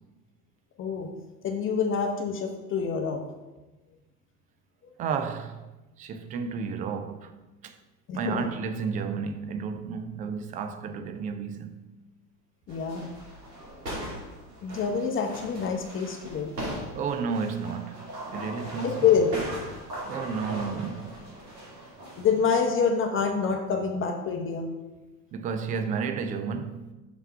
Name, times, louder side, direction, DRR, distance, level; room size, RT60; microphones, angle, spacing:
voice 1, 0.8-1.1 1.4-3.2 8.1-8.5 12.7-13.1 14.6-16.5 18.8-19.3 22.2-24.7, left 6 dB, 25° left, 0.9 m, -26 dB
voice 2, 5.0-5.6 6.0-7.3 7.6-7.7 8.1-11.9 16.9-18.1 18.3-19.0 20.0-21.3 25.3-26.9, right 5 dB, 20° right, 0.4 m, -32 dB
sound 1, 12.7-22.6, right 1 dB, 75° right, 2.6 m, -39 dB
6.1 x 5.5 x 5.5 m
figure-of-eight pair, 75°, 49 cm